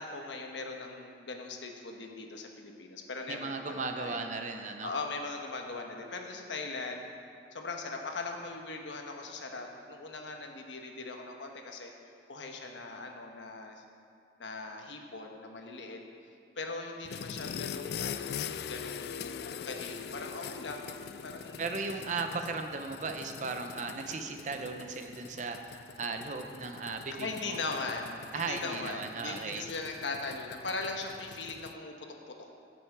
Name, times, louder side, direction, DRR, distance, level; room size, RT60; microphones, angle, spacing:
voice 1, 0.0-4.2 4.8-7.1 7.5-11.9 12.3-13.8 14.4-16.0 16.6-18.4 18.6-20.9 21.2-21.8 27.1-32.5, left 3 dB, 85° left, 2 dB, 1.1 m, -40 dB
voice 2, 3.3-4.9 21.6-27.6 28.3-29.6, right 4 dB, 40° right, 5 dB, 0.6 m, -36 dB
sound 1, 17.0-31.8, left 7 dB, 60° left, 0.3 m, -43 dB
15.0 x 6.1 x 4.7 m, 2.6 s
head